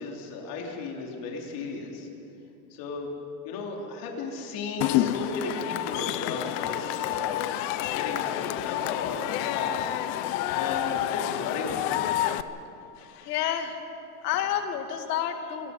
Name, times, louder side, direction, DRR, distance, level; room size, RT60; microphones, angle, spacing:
voice 1, 0.0-2.1 2.8-3.1 3.4-7.4 7.8-11.9, left 3 dB, 45° left, 0 dB, 3.9 m, -35 dB
Cheering / Crowd, 4.8-12.4, left 13 dB, 30° left, 0.4 m, -29 dB
voice 2, 13.0-13.8 14.2-15.7, left 10 dB, 70° left, 6 dB, 2.3 m, -30 dB
27.5 x 19.0 x 5.4 m, 2.8 s
supercardioid pair, 145°, 48 cm